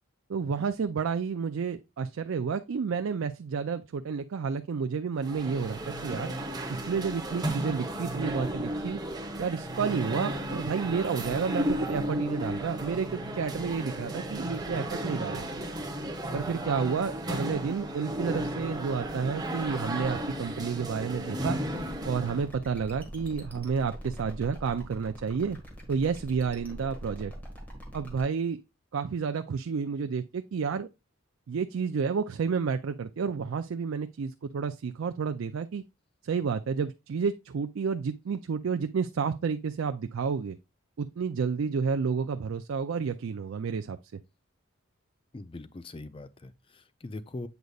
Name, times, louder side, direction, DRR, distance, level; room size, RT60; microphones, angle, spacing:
voice 1, 0.3-6.3 6.7-9.0 9.4-15.4 16.3-21.6 22.0-25.6 25.9-27.3 27.9-28.6 28.9-30.9 31.5-35.8 36.2-40.6 41.0-44.0, right 5 dB, 70° right, 0.4 m, -30 dB
sound 1, 5.2-22.5, right 1 dB, 20° right, 1.0 m, -34 dB
sound 2, 21.6-28.2, equal, 10° left, 1.7 m, -44 dB
voice 2, 45.3-47.5, left 2 dB, 25° left, 0.4 m, -41 dB
8.0 x 5.1 x 2.3 m
head